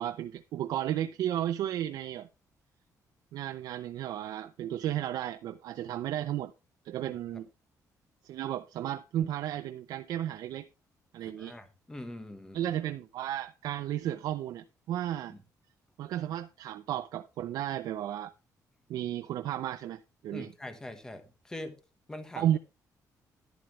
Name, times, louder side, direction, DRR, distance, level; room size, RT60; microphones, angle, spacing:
voice 1, 0.0-2.3 3.3-6.5 6.8-7.5 8.2-10.7 11.1-11.5 12.5-15.3 16.0-18.3 18.9-20.5 22.4-22.6, right 11 dB, 80° right, 0.6 m, -33 dB
voice 2, 11.2-12.6 15.3-15.4 20.3-21.8 22.1-22.5, left 1 dB, 10° left, 1.2 m, -43 dB
11.5 x 11.0 x 3.1 m
cardioid pair, 180°, 7 cm